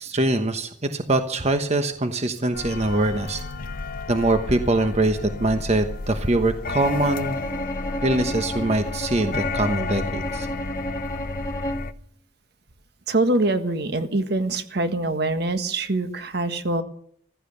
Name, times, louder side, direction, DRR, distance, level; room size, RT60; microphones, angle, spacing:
voice 1, 0.0-3.4 4.1-7.4 8.0-10.5, right 2 dB, 35° right, 7 dB, 1.1 m, -23 dB
sound 1, 2.5-11.9, left 3 dB, 50° left, 0.8 m, -32 dB
Bowed string instrument, 6.8-11.9, equal, 20° left, 1.4 m, -32 dB
voice 2, 13.1-16.8, right 2 dB, 60° right, 9 dB, 1.6 m, -24 dB
15.5 x 14.0 x 6.7 m, 0.62 s
head